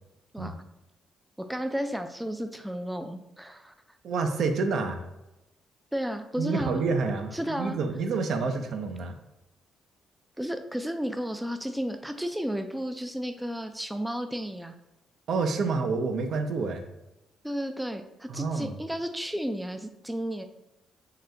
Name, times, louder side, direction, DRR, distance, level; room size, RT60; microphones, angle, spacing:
voice 1, 1.5-3.7 5.9-6.8 7.3-7.8 10.4-14.7 17.4-20.5, equal, 5° right, 7 dB, 0.3 m, -33 dB
voice 2, 4.0-5.0 6.4-9.2 15.3-16.9 18.3-18.8, right 4 dB, 65° right, 6 dB, 0.5 m, -28 dB
3.8 x 2.6 x 3.3 m, 0.95 s
cardioid pair, 90°, 0 cm